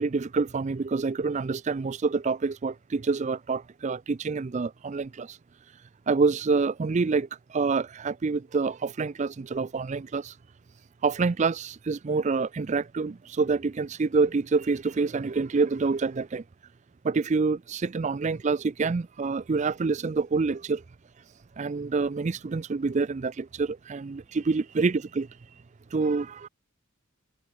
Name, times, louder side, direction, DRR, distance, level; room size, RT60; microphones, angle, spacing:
voice 1, 0.0-5.4 6.1-10.4 11.0-16.4 17.0-20.8 21.6-25.3 25.9-26.5, right 4 dB, 35° right, 0.4 m, -27 dB
head